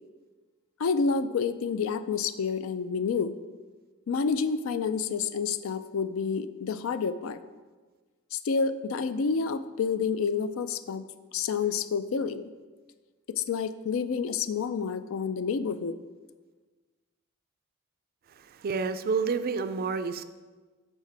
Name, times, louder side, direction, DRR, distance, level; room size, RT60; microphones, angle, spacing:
voice 1, 0.8-3.3 4.1-7.4 8.3-11.1 11.3-12.5 13.3-15.9, left 5 dB, 70° left, 13 dB, 0.4 m, -29 dB
voice 2, 18.4-20.2, right 5 dB, 45° right, 11 dB, 0.4 m, -29 dB
8.5 x 6.3 x 3.3 m, 1.3 s
head